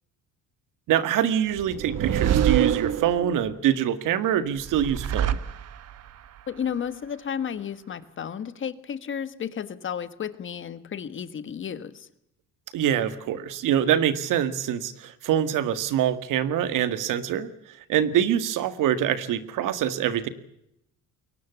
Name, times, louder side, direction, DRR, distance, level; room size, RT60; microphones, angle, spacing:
voice 1, 0.9-5.4 12.7-17.5 17.9-20.3, right 10 dB, 70° right, 12 dB, 1.9 m, -24 dB
sound 1, 1.5-3.5 4.6-6.1, right 9 dB, 50° right, 1.3 m, -25 dB
voice 2, 6.5-12.1, left 8 dB, 35° left, 13 dB, 1.5 m, -33 dB
22.5 x 18.5 x 8.2 m, 0.79 s
cardioid pair, 135°, 33 cm